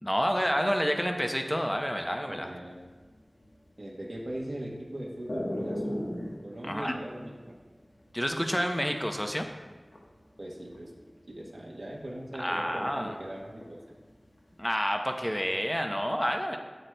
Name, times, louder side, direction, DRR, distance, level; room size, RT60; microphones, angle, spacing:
voice 1, 0.0-2.5 6.6-6.9 8.1-9.4 12.4-13.2 14.6-16.6, equal, 10° left, 4 dB, 0.7 m, -29 dB
voice 2, 2.3-2.8 3.8-6.1 6.4-7.6 10.4-10.9 11.3-13.8, right 1 dB, 75° right, -3 dB, 1.0 m, -40 dB
sound 1, 2.8-9.3 9.6-13.1 13.4-14.6, left 1 dB, 80° left, 1.1 m, -37 dB
8.0 x 7.7 x 2.2 m, 1.3 s
wide cardioid pair, 45°, 0 cm